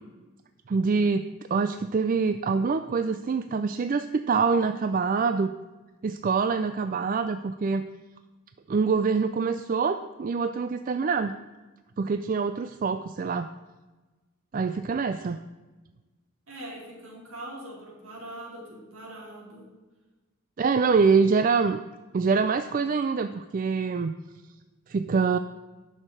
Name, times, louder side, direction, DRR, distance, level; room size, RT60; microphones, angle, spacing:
voice 1, 0.7-5.5 6.0-7.8 8.7-11.3 12.0-13.5 14.5-15.4 20.6-21.8 22.1-24.2 24.9-25.4, right 5 dB, 40° right, 10 dB, 0.3 m, -25 dB
voice 2, 16.5-19.7, right 1 dB, 65° right, -2 dB, 3.4 m, -42 dB
11.0 x 6.5 x 6.4 m, 1.2 s
head